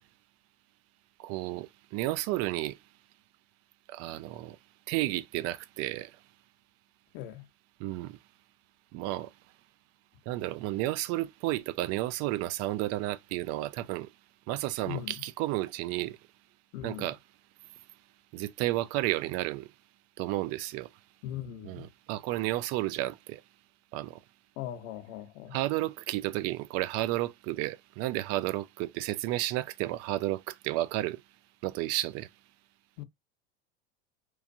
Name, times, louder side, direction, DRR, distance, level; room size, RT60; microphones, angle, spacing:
voice 1, 1.2-2.8 3.9-4.6 4.9-6.1 7.8-8.2 8.9-9.3 10.3-14.1 14.5-16.2 16.8-17.2 18.3-19.7 20.2-20.9 21.6-23.4 23.9-24.2 25.5-31.2 31.6-32.3, right 16 dB, 50° right, 0.4 m, -32 dB
voice 2, 7.1-7.5 14.9-15.2 16.7-17.1 21.2-21.9 24.6-25.6 33.0-33.1, left 12 dB, 60° left, 0.8 m, -39 dB
3.1 x 2.2 x 2.5 m
hypercardioid pair, 105°, 33 cm